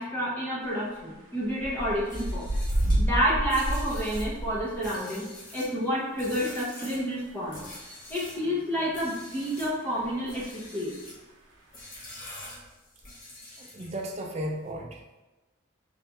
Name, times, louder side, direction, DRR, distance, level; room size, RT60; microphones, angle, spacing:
voice 1, 0.0-2.5 3.0-5.3 5.5-7.6 8.1-10.9, equal, 10° left, -7 dB, 0.6 m, -29 dB
sound 1, 1.0-1.1 1.5-4.9 9.8-10.1 10.4-10.5 10.7-10.8, right 1 dB, 85° right, 0.7 m, -29 dB
sound 2, 2.0-8.4 8.9-9.8 10.2-11.2 11.7-14.1, left 1 dB, 45° left, 1.1 m, -45 dB
voice 2, 13.6-15.0, right 1 dB, 35° right, 1 dB, 0.4 m, -35 dB
3.3 x 3.2 x 2.9 m, 1.1 s
head